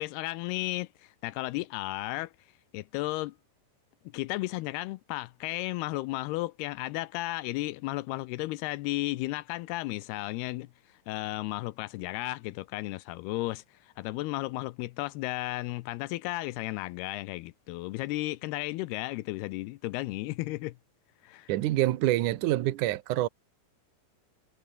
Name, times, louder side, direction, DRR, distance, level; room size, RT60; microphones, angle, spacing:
voice 1, 0.0-2.3 2.7-3.4 4.1-10.7 11.1-20.8 21.2-21.5, left 19 dB, 80° left, 2.4 m, -34 dB
voice 2, 21.5-23.3, right 15 dB, 70° right, 2.0 m, -26 dB
omnidirectional pair, 5.1 m